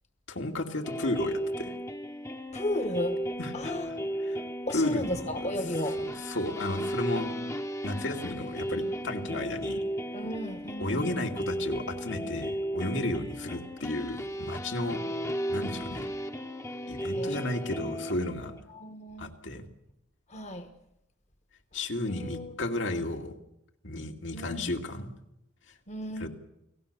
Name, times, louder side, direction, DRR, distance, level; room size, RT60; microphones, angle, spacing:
voice 1, 0.3-1.7 3.4-3.7 4.3-4.4 4.7-5.5 6.0-7.3 7.8-9.8 10.8-15.0 15.5-16.1 16.9-18.5 19.2-19.6 21.7-23.3 23.8-25.1 26.2-26.3, left 1 dB, 75° left, 3 dB, 2.5 m, -33 dB
sound 1, 0.8-18.6, equal, 15° left, 0.9 m, -35 dB
voice 2, 2.5-3.2 3.5-3.9 4.6-6.0 10.1-11.1 17.1-17.8 18.7-19.3 20.3-20.7 22.1-22.5 24.3-24.7 25.9-26.3, left 1 dB, 35° left, 8 dB, 1.2 m, -34 dB
29.5 x 19.0 x 6.9 m, 0.84 s
head